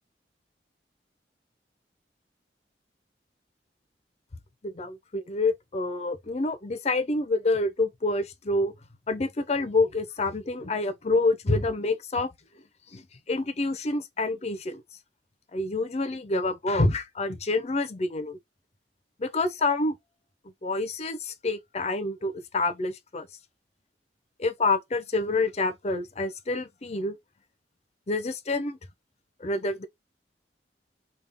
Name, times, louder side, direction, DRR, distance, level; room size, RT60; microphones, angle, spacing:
voice 1, 4.6-8.7 9.1-12.3 12.9-14.8 15.5-18.4 19.2-20.0 20.6-23.3 24.4-27.2 28.1-28.8 29.4-29.9, left 2 dB, 40° left, 0.6 m, -27 dB
3.4 x 2.3 x 3.5 m
head